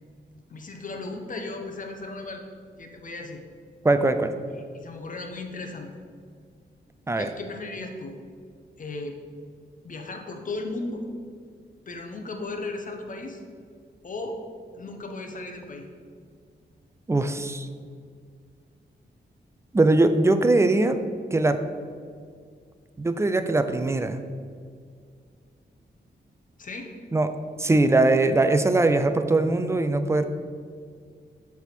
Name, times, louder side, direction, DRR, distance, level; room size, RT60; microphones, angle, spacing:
voice 1, 0.5-2.4 2.8-3.4 4.7-5.9 7.2-8.2 8.8-9.2 9.8-11.0 11.9-13.4 14.0-14.4 14.8-15.9 26.6-26.9, left 2 dB, 45° left, 3 dB, 0.9 m, -36 dB
voice 2, 3.8-4.3 7.1-7.3 17.1-17.7 19.7-21.0 21.3-21.6 23.0-24.2 27.1-30.2, right 2 dB, 15° right, 9 dB, 0.4 m, -21 dB
7.1 x 3.5 x 6.0 m, 2.1 s
wide cardioid pair, 120°, 19 cm